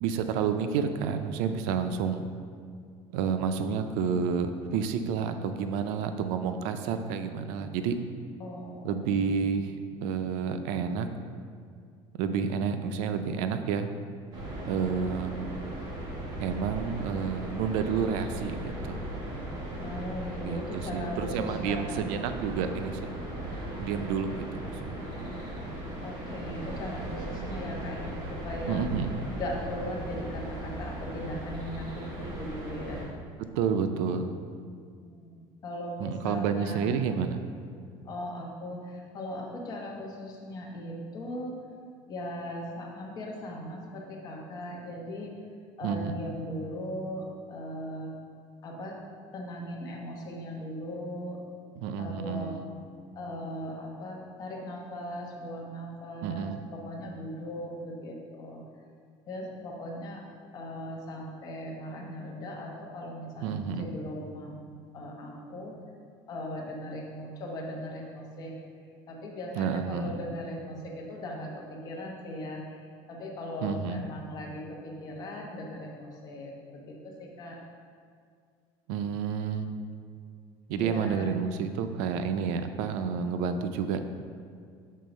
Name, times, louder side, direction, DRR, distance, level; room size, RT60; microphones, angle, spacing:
voice 1, 0.0-2.2 3.1-7.9 8.8-11.1 12.2-13.9 14.7-15.6 16.4-19.1 20.4-23.1 23.8-25.1 28.7-29.1 33.6-34.3 36.0-37.4 45.8-46.2 51.8-52.7 56.2-56.6 63.4-63.9 69.6-70.1 73.6-74.0 78.9-79.7 80.7-84.0, right 6 dB, 90° right, 8 dB, 0.5 m, -30 dB
voice 2, 8.4-9.4 19.8-22.0 26.0-28.9 29.3-33.0 35.0-36.9 38.0-41.5 42.1-45.3 45.8-48.1 48.6-49.0 49.3-51.4 52.0-52.5 53.1-58.6 59.3-60.2 60.5-64.5 64.9-65.7 66.3-68.5 69.1-77.6 80.8-81.3, left 1 dB, 35° left, -1 dB, 1.1 m, -38 dB
sound 1, 14.3-33.1, right 1 dB, 40° right, 1.4 m, -37 dB
6.5 x 3.7 x 5.2 m, 2.1 s
cardioid pair, 155°, 11 cm